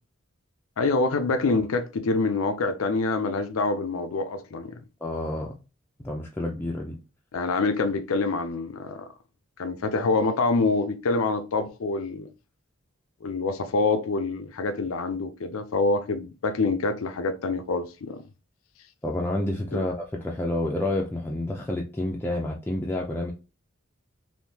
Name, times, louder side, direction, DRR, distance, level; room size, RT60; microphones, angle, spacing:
voice 1, 0.8-4.8 7.3-9.1 9.6-12.3 13.2-18.2 19.7-19.8, left 3 dB, 85° left, 0.5 m, -26 dB
voice 2, 5.0-5.5 6.0-7.0 19.0-23.3, left 1 dB, 10° left, 0.4 m, -29 dB
3.5 x 2.7 x 2.7 m
head